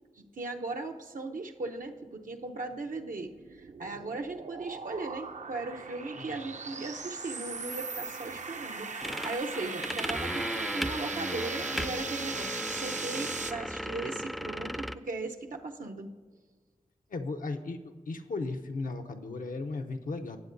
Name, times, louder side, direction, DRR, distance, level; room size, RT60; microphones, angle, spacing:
voice 1, 0.2-16.1, right 3 dB, 85° right, 3 dB, 0.8 m, -38 dB
sound 1, 2.9-13.5, right 4 dB, 65° right, 0.5 m, -39 dB
sound 2, 9.0-14.9, equal, ahead, 0.4 m, -36 dB
voice 2, 17.1-20.4, left 3 dB, 85° left, 5 dB, 0.7 m, -36 dB
17.5 x 7.6 x 2.6 m, 1.5 s
cardioid pair, 40°, 14 cm